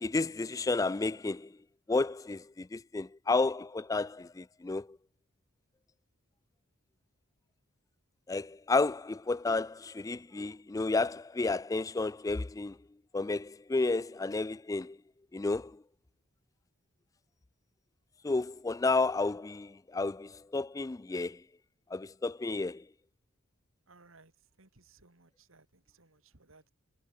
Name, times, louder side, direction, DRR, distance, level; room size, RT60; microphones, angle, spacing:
voice 1, 0.0-1.5 1.9-4.9 8.3-12.8 13.1-15.0 15.3-15.7 18.2-21.4 21.9-22.8, left 3 dB, 15° left, 0.3 m, -31 dB
voice 2, 23.9-24.3 24.6-26.7, right 3 dB, 70° right, 2.8 m, -61 dB
head